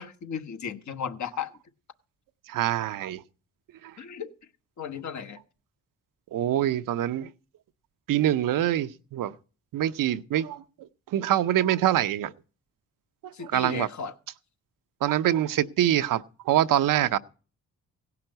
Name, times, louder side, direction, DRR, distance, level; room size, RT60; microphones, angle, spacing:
voice 1, 0.0-1.5 4.0-4.3 4.8-5.4 13.3-14.1, left 6 dB, 60° left, 1.3 m, -35 dB
voice 2, 2.5-3.2 3.8-3.9 6.3-7.3 8.1-9.3 9.7-10.6 11.1-12.3 13.2-13.9 15.0-17.2, right 12 dB, 80° right, 0.7 m, -25 dB
17.0 x 5.8 x 7.8 m
cardioid pair, 115°, 32 cm